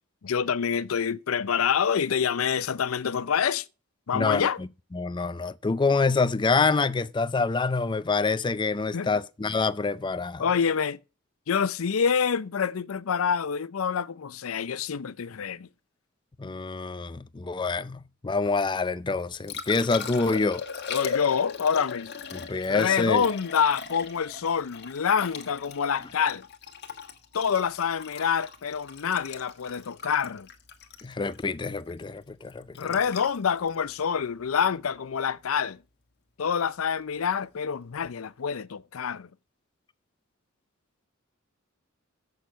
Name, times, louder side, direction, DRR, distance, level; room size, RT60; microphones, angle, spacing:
voice 1, 0.2-3.6 4.1-4.6 8.9-9.1 10.4-11.0 11.5-15.7 20.9-22.1 22.7-26.4 27.3-30.5 32.8-35.8 36.4-39.3, left 7 dB, 90° left, 0.5 m, -26 dB
voice 2, 4.1-10.4 16.4-20.6 22.3-23.3 31.0-32.9, left 4 dB, 20° left, 0.4 m, -26 dB
Liquid, 19.1-35.2 38.0-38.1, left 6 dB, 55° left, 1.5 m, -39 dB
7.7 x 6.5 x 6.5 m
head